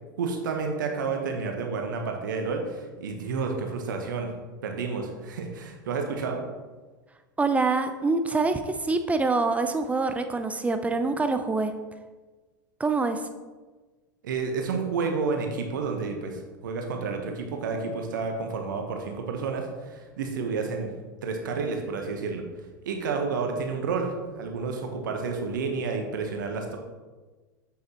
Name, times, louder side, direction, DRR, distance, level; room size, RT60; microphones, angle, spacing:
voice 1, 0.2-4.3 4.6-6.4 14.2-20.9 21.2-22.4 22.8-26.8, right 4 dB, 70° right, 3 dB, 1.1 m, -30 dB
voice 2, 7.4-11.7 12.8-13.2, right 3 dB, 15° right, 8 dB, 0.5 m, -25 dB
7.7 x 7.6 x 2.9 m, 1.3 s
hypercardioid pair, 90°, 11 cm